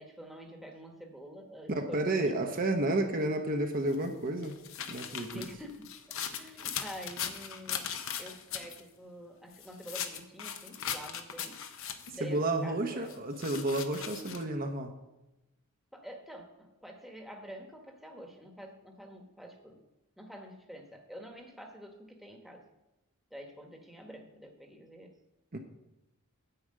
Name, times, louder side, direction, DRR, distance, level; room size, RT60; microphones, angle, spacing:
voice 1, 0.0-2.5 5.3-6.0 6.3-7.8 8.2-11.6 12.1-13.2 15.9-19.8 20.2-22.6 23.3-25.2, equal, ahead, 1 dB, 1.2 m, -47 dB
voice 2, 1.7-4.6 4.9-5.5 12.2-14.9 25.5-25.6, right 2 dB, 45° right, 4 dB, 0.8 m, -31 dB
sound 1, 3.9-8.8 9.5-12.2 13.1-14.4, left 8 dB, 65° left, 0.8 m, -39 dB
9.8 x 4.9 x 7.5 m, 0.96 s
head